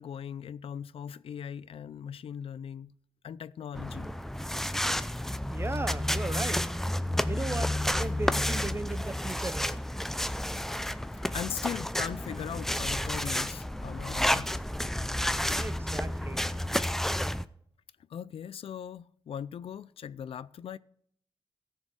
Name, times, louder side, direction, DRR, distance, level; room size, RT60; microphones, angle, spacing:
voice 1, 0.0-2.9 3.2-4.2 11.2-14.5 18.1-20.8, left 8 dB, 70° left, 0.4 m, -39 dB
sound 1, 3.7-17.4, left 1 dB, 5° left, 0.5 m, -31 dB
voice 2, 5.5-6.7 7.3-9.8 15.5-16.4, right 3 dB, 25° right, 0.8 m, -37 dB
14.5 x 6.6 x 6.2 m
cardioid pair, 90°, 10 cm